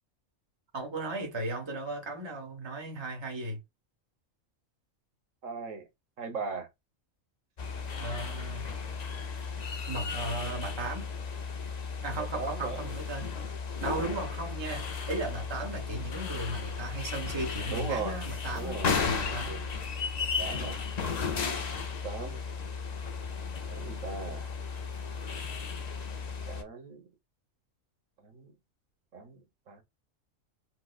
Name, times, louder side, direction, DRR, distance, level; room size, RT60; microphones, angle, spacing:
voice 1, 0.7-3.6 8.0-8.7 9.4-9.5 9.8-11.1 12.0-13.3 13.8-19.6, right 2 dB, 20° right, 1.0 m, -36 dB
voice 2, 5.4-5.8 6.2-6.7 12.2-12.8 17.7-18.3 18.5-18.9 19.3-19.7 20.4-20.8 22.0-22.4 23.7-24.5 26.5-27.0 28.2-28.5 29.1-29.4 29.7-29.8, right 5 dB, 75° right, 1.4 m, -38 dB
sound 1, 7.6-26.6, left 5 dB, 45° left, 0.6 m, -35 dB
4.4 x 2.2 x 2.3 m
omnidirectional pair, 1.4 m